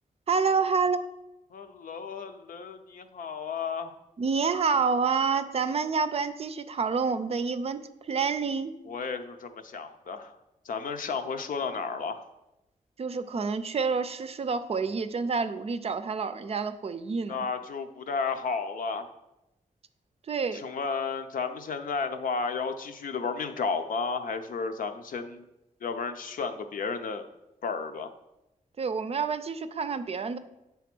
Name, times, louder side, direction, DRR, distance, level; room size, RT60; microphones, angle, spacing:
voice 1, 0.3-1.0 4.2-8.7 13.0-17.4 20.3-20.6 28.8-30.4, right 5 dB, 45° right, 11 dB, 0.4 m, -28 dB
voice 2, 1.5-3.9 8.9-10.4 10.6-12.2 17.3-19.1 20.5-25.4 25.8-27.3 27.6-28.1, left 5 dB, 75° left, 7 dB, 0.7 m, -33 dB
9.3 x 3.5 x 6.0 m, 0.93 s
wide cardioid pair, 160°, 14 cm